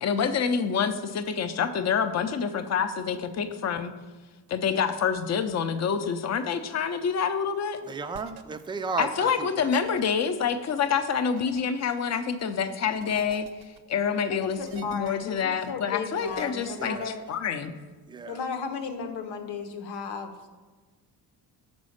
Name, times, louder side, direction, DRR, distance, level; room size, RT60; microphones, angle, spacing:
voice 1, 0.0-3.9 4.5-7.8 9.0-13.5 13.9-17.8, left 6 dB, 40° left, 9 dB, 0.6 m, -27 dB
voice 2, 7.9-9.3 9.6-9.7 16.8-17.1 18.1-18.4, right 4 dB, 10° right, 8 dB, 0.3 m, -34 dB
sound 1, 8.1-8.4 9.8-10.0 11.4-11.6 13.0-13.8 14.6-15.4 16.2-17.4, right 9 dB, 65° right, 0.6 m, -46 dB
voice 3, 14.3-17.2 18.3-20.5, left 5 dB, 85° left, 6 dB, 1.0 m, -35 dB
6.1 x 4.2 x 6.4 m, 1.3 s
cardioid pair, 100°, 43 cm